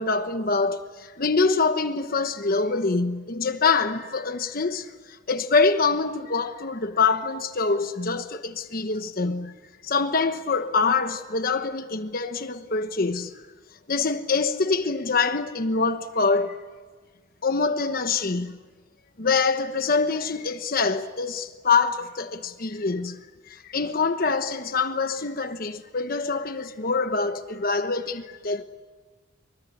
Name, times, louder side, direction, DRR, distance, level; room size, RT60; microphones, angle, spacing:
voice 1, 0.0-9.5 9.8-13.3 13.9-16.6 17.4-18.5 19.2-23.2 23.5-28.6, left 4 dB, 50° left, 1.1 m, -25 dB
25.0 x 24.5 x 8.5 m
head